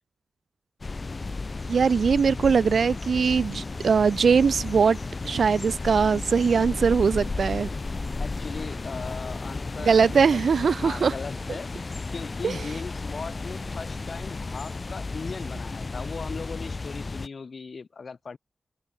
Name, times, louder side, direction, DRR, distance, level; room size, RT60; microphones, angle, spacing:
sound 1, 0.8-17.3, left 3 dB, 40° left, 3.0 m, -33 dB
voice 1, 1.7-5.0 5.2-7.7 9.8-11.1 12.4-12.6, right 6 dB, 85° right, 0.5 m, -21 dB
voice 2, 8.2-10.5 10.8-18.4, left 4 dB, 60° left, 2.7 m, -38 dB
wide cardioid pair, 135°, 0 cm